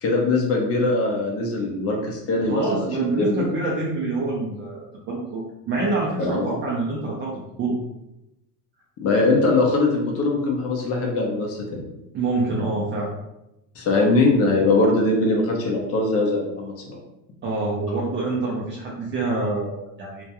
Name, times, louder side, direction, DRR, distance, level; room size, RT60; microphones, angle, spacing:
voice 1, 0.0-3.4 6.2-6.6 9.0-11.8 13.8-17.0, left 2 dB, 30° left, 0 dB, 0.5 m, -21 dB
voice 2, 2.5-4.8 5.1-7.3 7.6-7.7 12.1-13.1 17.4-20.2, right 3 dB, 25° right, -3 dB, 0.3 m, -26 dB
2.3 x 2.1 x 2.8 m, 0.90 s
hypercardioid pair, 100°, 47 cm